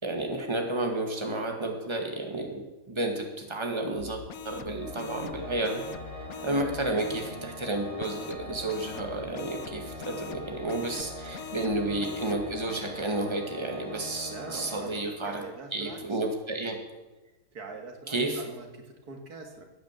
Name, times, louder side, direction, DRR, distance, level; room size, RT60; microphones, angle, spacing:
voice 1, 0.0-5.8 6.1-15.4 15.7-16.8 18.1-18.4, right 2 dB, 20° right, 2 dB, 2.0 m, -31 dB
sound 1, 4.0-7.4 8.0-12.9, left 8 dB, 70° left, 1.2 m, -43 dB
Organ, 4.7-15.6, equal, 25° left, 1.6 m, -43 dB
voice 2, 14.3-16.2 17.5-19.7, right 3 dB, 90° right, 4 dB, 2.4 m, -43 dB
14.5 x 9.3 x 7.5 m, 1.1 s
omnidirectional pair, 1.6 m